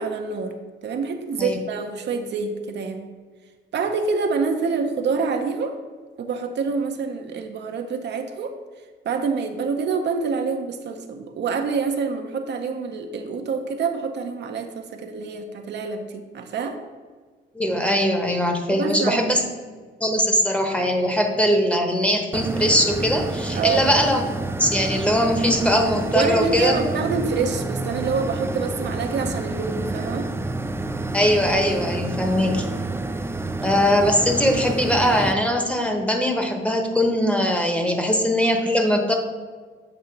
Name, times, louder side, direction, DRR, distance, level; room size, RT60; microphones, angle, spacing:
voice 1, 0.0-3.1 3.7-5.8 6.2-8.6 9.0-16.8 18.7-19.3 23.5-23.9 26.1-30.3 32.5-32.6, right 5 dB, 60° right, 5 dB, 0.7 m, -26 dB
voice 2, 17.5-19.4 20.0-24.3 24.6-26.8 31.1-32.6 33.6-39.1, equal, 5° left, 3 dB, 0.9 m, -21 dB
sound 1, 22.3-35.3, right 2 dB, 10° right, 0.3 m, -29 dB
7.8 x 2.9 x 5.8 m, 1.5 s
cardioid pair, 90°, 20 cm